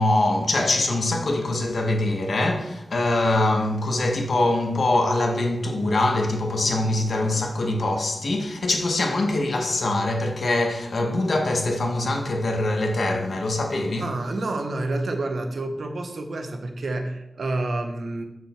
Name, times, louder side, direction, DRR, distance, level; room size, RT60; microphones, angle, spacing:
voice 1, 0.0-14.1, left 2 dB, 65° left, 1.2 m, -23 dB
voice 2, 6.6-7.3 14.0-18.2, right 2 dB, 70° right, 1.0 m, -29 dB
6.5 x 6.3 x 4.4 m
wide cardioid pair, 120°, 0 cm